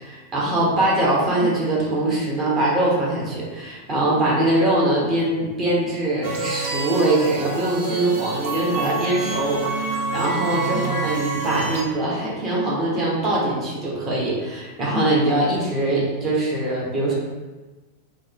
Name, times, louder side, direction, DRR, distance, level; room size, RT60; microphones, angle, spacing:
voice 1, 0.0-17.1, right 1 dB, 25° right, -5 dB, 1.0 m, -22 dB
sound 1, 6.2-11.8, right 4 dB, 55° right, 0.5 m, -27 dB
3.5 x 2.0 x 3.2 m, 1.2 s
figure-of-eight pair, 90°, 0 cm